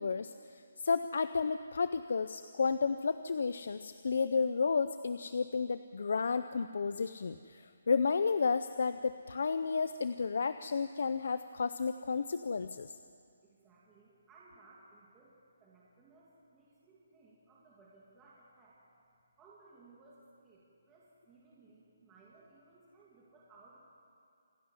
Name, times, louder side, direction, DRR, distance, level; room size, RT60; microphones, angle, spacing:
voice 1, 0.0-13.0, left 5 dB, 60° left, 12 dB, 0.6 m, -32 dB
voice 2, 13.4-18.8 19.4-23.8, right 3 dB, 10° right, -6 dB, 2.4 m, -61 dB
27.0 x 11.5 x 9.7 m, 2.4 s
hypercardioid pair, 175°, 0 cm